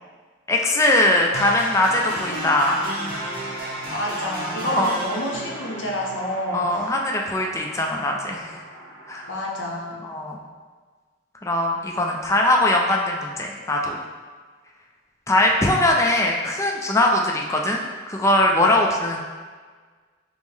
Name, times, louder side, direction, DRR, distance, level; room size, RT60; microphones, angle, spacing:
voice 1, 0.5-2.8 4.6-4.9 6.5-8.5 9.1-9.3 10.0-10.4 11.4-14.0 15.3-19.2, left 1 dB, 15° left, 0 dB, 0.3 m, -21 dB
sound 1, 1.3-9.3, right 1 dB, 55° right, 1.0 m, -34 dB
voice 2, 3.9-6.6 9.3-10.0, equal, 70° left, -2 dB, 0.7 m, -28 dB
5.3 x 2.0 x 3.1 m, 1.5 s
head